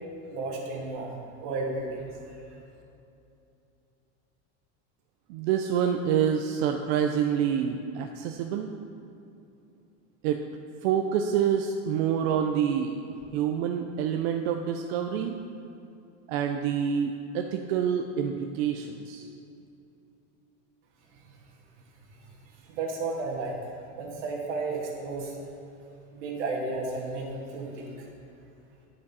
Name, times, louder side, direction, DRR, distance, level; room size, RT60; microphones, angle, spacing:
voice 1, 0.3-2.1 22.7-23.5 24.0-25.3 26.1-27.9, right 3 dB, 80° right, -2 dB, 1.9 m, -33 dB
voice 2, 5.3-8.7 10.2-10.4 10.8-15.4 16.3-19.3, right 8 dB, 60° right, 5 dB, 0.5 m, -27 dB
10.5 x 5.2 x 4.1 m, 2.7 s
supercardioid pair, 165°, 35 cm